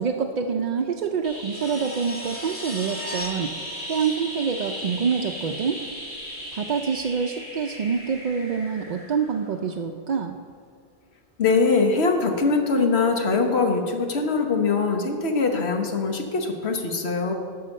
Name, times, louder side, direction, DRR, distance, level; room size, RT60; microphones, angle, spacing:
voice 1, 0.0-3.5 3.9-5.8 6.5-10.4, right 6 dB, 55° right, 3 dB, 0.5 m, -26 dB
sound 1, 1.2-9.9 12.3-12.4, equal, 55° left, 1.9 m, -36 dB
voice 2, 11.4-17.3, left 4 dB, 90° left, 4 dB, 1.3 m, -22 dB
11.5 x 5.7 x 6.5 m, 2.2 s
omnidirectional pair, 1.1 m